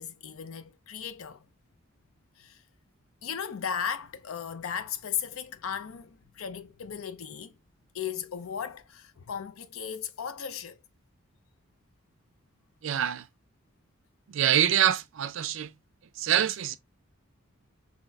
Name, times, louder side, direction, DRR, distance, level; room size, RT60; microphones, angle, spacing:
voice 1, 0.0-1.4 2.4-2.6 3.2-7.5 7.9-10.8, left 8 dB, 85° left, 0.5 m, -36 dB
voice 2, 12.8-13.3 14.3-15.7 16.2-16.8, right 10 dB, 70° right, 0.4 m, -25 dB
4.0 x 3.0 x 2.2 m
head